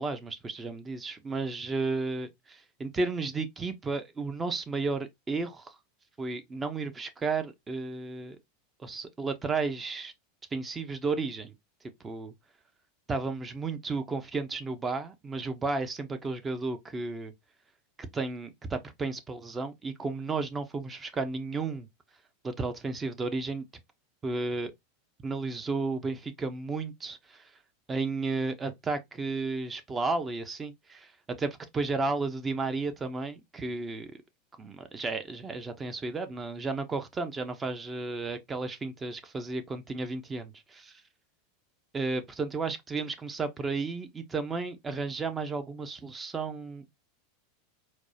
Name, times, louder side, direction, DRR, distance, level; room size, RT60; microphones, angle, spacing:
voice 1, 0.0-5.8 6.2-8.4 8.8-10.1 10.5-11.5 12.0-12.3 13.1-17.3 18.0-21.9 22.4-23.7 24.2-24.7 25.2-27.4 27.9-31.1 31.4-34.1 34.6-40.9 41.9-47.0, right 3 dB, 20° right, 0.8 m, -33 dB
4.5 x 2.3 x 2.8 m
hypercardioid pair, 90°, 0 cm